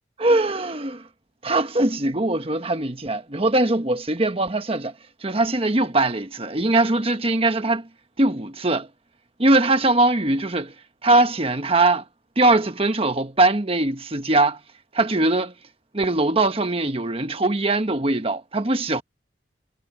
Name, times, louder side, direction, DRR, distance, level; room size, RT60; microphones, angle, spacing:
voice 1, 0.2-1.0 1.4-4.9 5.2-7.8 8.2-8.9 9.4-10.7 11.0-12.0 12.4-14.6 14.9-15.5 15.9-19.0, right 2 dB, 30° right, 1.2 m, -21 dB
head